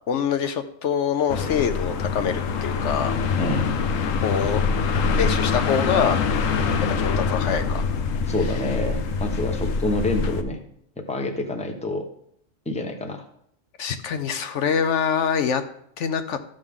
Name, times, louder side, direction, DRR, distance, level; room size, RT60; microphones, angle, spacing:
voice 1, 0.1-3.1 4.2-4.6 5.1-6.2 6.9-7.9 13.8-15.6 16.0-16.4, left 7 dB, 70° left, 9 dB, 0.9 m, -25 dB
sound 1, 1.3-10.4, left 5 dB, 90° left, 1.1 m, -24 dB
voice 2, 3.4-3.7 8.3-10.6 11.1-12.0 12.7-13.2, left 2 dB, 5° left, 4 dB, 0.8 m, -27 dB
13.0 x 6.5 x 3.6 m, 0.69 s
omnidirectional pair, 1.3 m